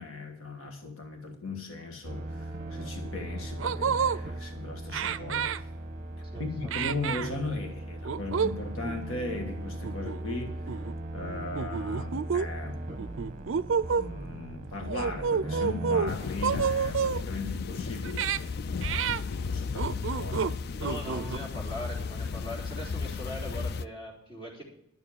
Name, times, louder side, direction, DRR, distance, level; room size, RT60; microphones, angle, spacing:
voice 1, 0.0-5.5 6.4-10.6 11.1-12.8 13.9-18.4 18.8-20.5, left 3 dB, 85° left, 3 dB, 1.6 m, -38 dB
sound 1, 2.0-16.1, right 1 dB, 35° right, 1.0 m, -38 dB
sound 2, 3.1-3.2 3.6-4.2 4.9-5.6 6.7-7.3 8.0-8.5 8.8-9.0 9.8-10.4 10.7-10.9 11.6-12.5 13.0-14.1 14.9-16.1 16.4-17.2 18.0-18.4 18.8-19.2 19.8-20.5 20.8-21.4, right 6 dB, 65° right, 0.4 m, -29 dB
voice 2, 6.3-6.7 20.8-24.6, left 1 dB, 25° left, -3 dB, 3.6 m, -40 dB
sound 3, 16.1-23.9, left 4 dB, 50° left, 0.4 m, -34 dB
11.5 x 7.0 x 8.5 m, 0.77 s
head